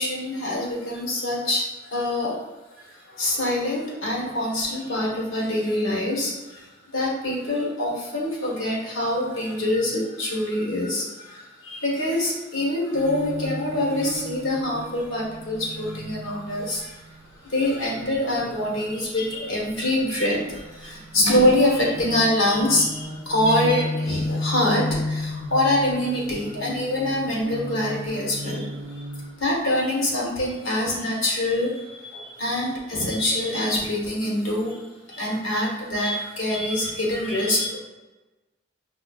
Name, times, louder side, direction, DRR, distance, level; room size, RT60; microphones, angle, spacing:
voice 1, 0.0-1.6 1.9-2.4 3.1-6.6 6.9-17.0 17.5-28.7 29.4-34.8 35.1-37.8, left 1 dB, 85° left, -4 dB, 1.1 m, -25 dB
sound 1, 12.9-17.1 20.2-29.4, left 1 dB, ahead, 0.9 m, -33 dB
4.9 x 2.4 x 2.3 m, 1.1 s
head